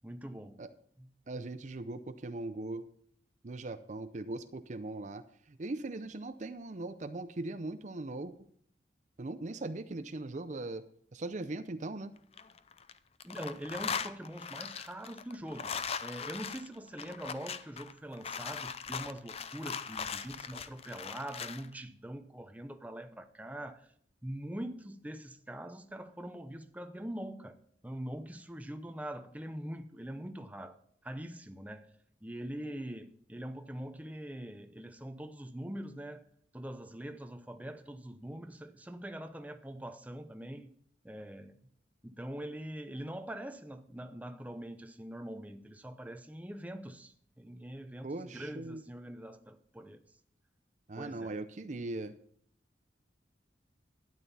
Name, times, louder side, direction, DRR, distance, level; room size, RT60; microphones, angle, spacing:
voice 1, 0.0-0.6 1.0-1.1 13.2-15.7 16.0-23.9 24.2-27.6 27.8-30.8 31.0-31.9 32.2-36.2 36.5-40.7 41.0-41.6 42.0-50.0 51.0-51.3, right 1 dB, 10° right, 0.7 m, -43 dB
voice 2, 1.3-2.9 3.4-5.2 5.5-8.3 9.2-10.8 11.1-12.1 48.0-48.8 50.9-52.1, right 2 dB, 40° right, 0.5 m, -39 dB
sound 1, 12.2-12.9 13.2-21.6, left 6 dB, 35° left, 0.5 m, -40 dB
12.5 x 9.1 x 4.2 m
head